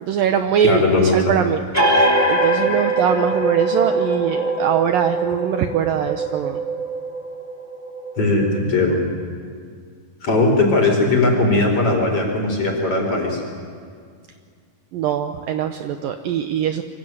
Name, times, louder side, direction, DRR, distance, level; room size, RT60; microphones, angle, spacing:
voice 1, 0.0-1.6 1.9-6.6 14.9-16.8, right 9 dB, 70° right, 6 dB, 2.3 m, -22 dB
voice 2, 0.6-1.3 8.2-9.0 10.2-13.4, left 2 dB, 35° left, 1 dB, 5.7 m, -18 dB
sound 1, 1.7-9.0, right 2 dB, 5° left, 1.8 m, -22 dB
27.0 x 24.5 x 8.0 m, 2.1 s
omnidirectional pair, 4.7 m